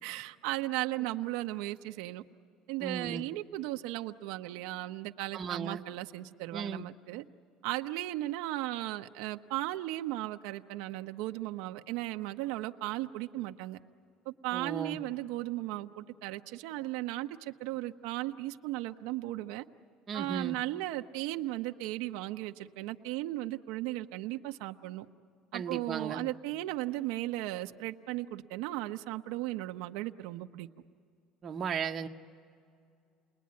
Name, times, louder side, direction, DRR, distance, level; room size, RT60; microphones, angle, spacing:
voice 1, 0.0-2.2 2.7-7.2 7.6-13.8 14.3-19.6 20.1-25.1 25.5-30.7, right 16 dB, 85° right, 6 dB, 0.8 m, -36 dB
voice 2, 2.8-3.2 5.3-5.8 6.5-6.9 14.5-15.0 20.1-20.6 25.5-26.2 31.4-32.1, right 6 dB, 30° right, 4 dB, 0.8 m, -36 dB
30.0 x 20.5 x 9.5 m, 2.4 s
cardioid pair, 165°, 0 cm